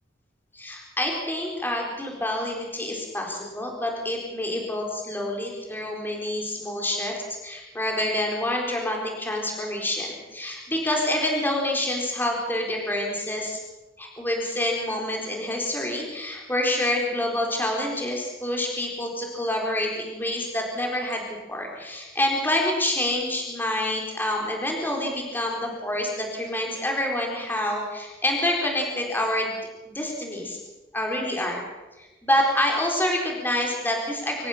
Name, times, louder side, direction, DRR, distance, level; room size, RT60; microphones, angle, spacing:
voice 1, 0.5-13.6 14.0-21.2 21.5-29.6 29.9-30.6 30.9-31.6 32.0-34.5, left 1 dB, 10° left, 0 dB, 4.1 m, -27 dB
25.5 x 14.5 x 7.3 m, 1.1 s
head